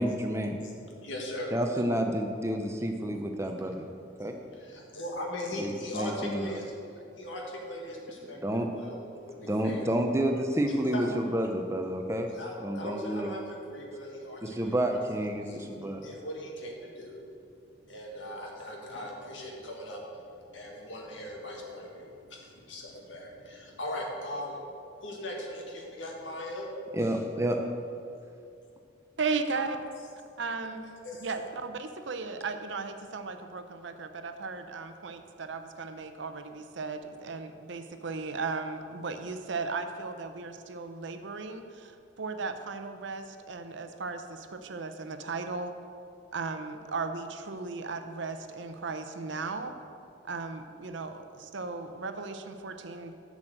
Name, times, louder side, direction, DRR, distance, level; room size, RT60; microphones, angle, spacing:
voice 1, 0.0-0.6 1.5-3.8 4.2-4.3 5.6-6.6 8.4-8.7 9.5-12.3 12.6-13.3 14.4-16.0 26.9-27.6, right 1 dB, 15° right, 4 dB, 0.6 m, -29 dB
voice 2, 0.6-1.5 3.4-3.6 4.1-6.8 7.2-8.4 8.6-9.9 10.9-11.1 12.3-15.1 15.4-24.6 25.0-26.7 29.5-29.7 31.0-31.3, left 1 dB, 70° left, -1 dB, 1.8 m, -40 dB
voice 3, 29.2-29.8 30.4-30.9 31.2-45.7 46.3-49.7 50.2-53.1, right 4 dB, 65° right, 7 dB, 0.7 m, -36 dB
7.5 x 6.2 x 7.8 m, 2.4 s
head